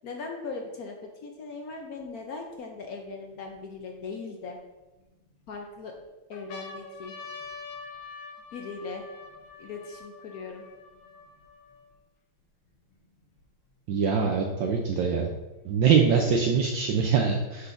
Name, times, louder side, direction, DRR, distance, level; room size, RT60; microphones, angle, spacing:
voice 1, 0.0-1.0 1.2-4.6 5.5-6.0 6.3-7.1 8.5-9.0 9.6-10.6, left 4 dB, 65° left, 2 dB, 0.9 m, -39 dB
sound 1, 2.0-2.1 2.8-4.0 4.7-5.5 6.0-6.1 6.3-12.0 12.7-12.8 12.9-13.9 14.9-15.9, left 4 dB, 90° left, 1.8 m, -45 dB
voice 2, 13.9-15.3 15.6-17.7, right 6 dB, 70° right, 1 dB, 1.2 m, -23 dB
8.2 x 6.0 x 2.6 m, 1.1 s
omnidirectional pair, 2.2 m